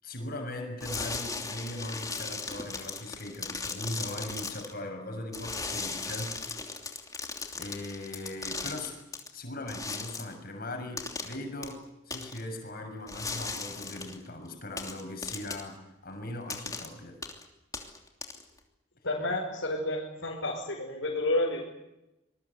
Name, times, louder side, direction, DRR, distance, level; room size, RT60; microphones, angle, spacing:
voice 1, 0.0-6.4 7.5-9.0 9.3-17.2, left 1 dB, 50° left, 5 dB, 6.5 m, -39 dB
sound 1, 0.8-4.7 5.3-9.3 9.7-10.3 11.0-11.4 11.6-11.7 12.1-12.4 13.1-14.2 14.8-15.7 16.5-16.9 17.2-17.4 17.7-18.6, left 4 dB, 20° left, 3.0 m, -37 dB
voice 2, 19.0-21.6, left 1 dB, 85° left, -3 dB, 5.4 m, -30 dB
26.0 x 21.0 x 8.5 m, 0.95 s
head